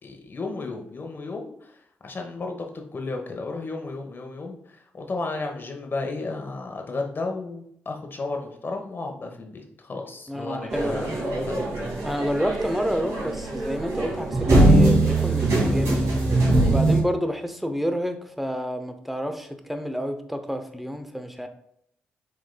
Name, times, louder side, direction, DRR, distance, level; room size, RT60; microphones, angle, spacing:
voice 1, 0.0-1.7 2.0-11.6, left 3 dB, 45° left, 3 dB, 1.1 m, -33 dB
voice 2, 10.3-11.0 12.0-16.0 16.6-21.5, equal, 5° right, 7 dB, 0.7 m, -29 dB
sound 1, 10.7-17.0, right 2 dB, 70° right, 1.8 m, -21 dB
6.4 x 3.7 x 2.2 m, 0.70 s
hypercardioid pair, 45°, 5 cm